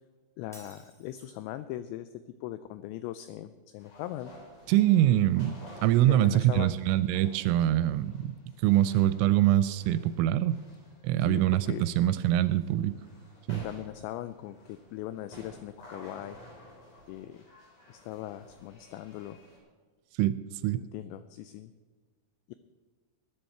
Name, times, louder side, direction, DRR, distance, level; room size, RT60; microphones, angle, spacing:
voice 1, 0.4-4.3 5.0-5.2 6.1-6.8 11.2-11.8 13.6-16.4 17.1-17.4 17.9-19.4 20.8-21.7 22.5-22.6, left 13 dB, 90° left, 12 dB, 2.5 m, -40 dB
Shatter, 0.5-1.5, right 1 dB, ahead, 1.6 m, -54 dB
sound 1, 3.8-19.6, left 1 dB, 45° left, 5.4 m, -53 dB
voice 2, 4.7-5.5 5.8-8.3 8.6-10.6 11.0-13.0 13.5-13.6 20.2-20.4 20.6-20.8, right 13 dB, 85° right, 14 dB, 2.9 m, -24 dB
20.0 x 10.0 x 4.5 m, 1.4 s
omnidirectional pair, 5.6 m